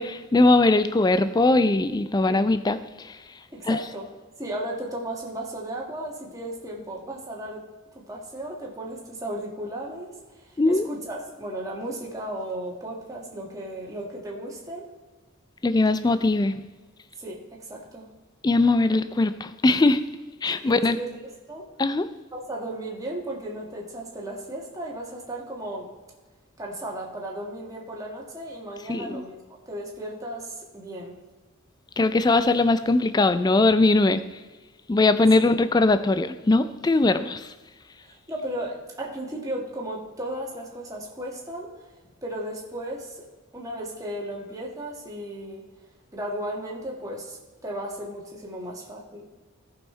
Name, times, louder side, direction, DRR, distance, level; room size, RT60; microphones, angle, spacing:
voice 1, 0.0-3.2 3.7-3.8 10.6-10.8 15.6-16.5 18.4-20.0 20.4-21.0 21.8-22.1 28.9-29.2 32.0-34.2 34.9-37.5, left 2 dB, 20° left, 0.3 m, -20 dB
voice 2, 3.5-4.1 4.4-7.7 7.9-14.9 17.2-18.1 20.5-21.7 22.3-25.9 26.6-31.2 35.4-35.5 38.0-41.7 42.2-43.3 43.5-45.6 46.1-49.2, right 1 dB, 15° right, 1.7 m, -35 dB
14.0 x 5.6 x 4.4 m
head